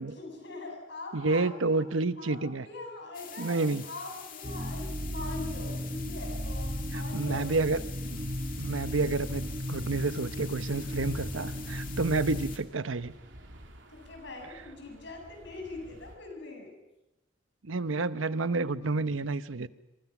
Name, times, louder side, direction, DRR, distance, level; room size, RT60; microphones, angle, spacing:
voice 1, 0.0-1.8 2.2-7.7 13.9-16.7, left 2 dB, 65° left, 2 dB, 7.7 m, -42 dB
voice 2, 1.1-2.7 3.4-3.8 6.9-7.8 8.1-8.2 8.6-13.1 17.6-19.7, right 3 dB, 90° right, 13 dB, 0.9 m, -29 dB
sound 1, 3.1-12.6, left 9 dB, 45° left, 2.6 m, -46 dB
sound 2, 4.4-12.6, equal, 30° right, 1.3 m, -35 dB
sound 3, 8.0-16.2, equal, 70° right, 3.4 m, -49 dB
26.5 x 24.0 x 6.1 m, 0.95 s
head